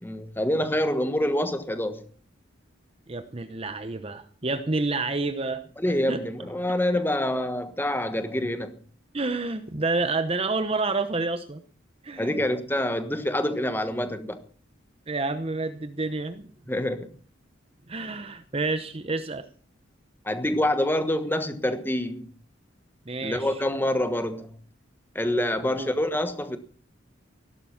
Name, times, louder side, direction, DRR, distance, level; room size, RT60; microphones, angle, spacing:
voice 1, 0.0-2.0 5.8-8.8 12.2-14.4 16.7-17.1 20.2-22.3 23.2-24.5 25.1-26.6, left 1 dB, 10° left, 1.3 m, -26 dB
voice 2, 3.1-5.7 6.1-6.2 9.1-11.6 12.0-12.4 15.1-16.4 17.9-19.5 23.1-23.6 25.6-25.9, right 3 dB, 30° right, 0.9 m, -29 dB
17.0 x 12.0 x 5.8 m
head